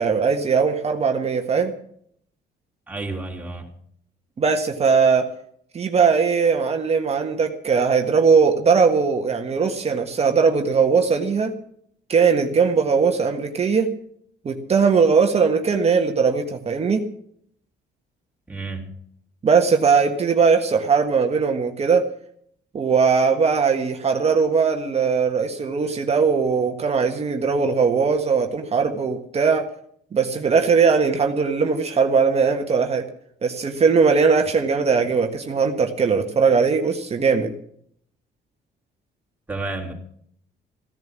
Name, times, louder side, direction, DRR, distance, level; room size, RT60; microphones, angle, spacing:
voice 1, 0.0-1.7 4.4-5.3 5.7-11.5 12.1-13.9 14.4-17.0 19.4-22.1 22.7-29.7 30.1-33.1 33.4-37.5, right 5 dB, 35° right, 4 dB, 1.5 m, -19 dB
voice 2, 2.9-3.7 18.5-18.9 39.5-39.9, right 3 dB, 10° right, -1 dB, 3.7 m, -30 dB
16.0 x 10.5 x 7.4 m, 0.65 s
cardioid pair, 115°, 18 cm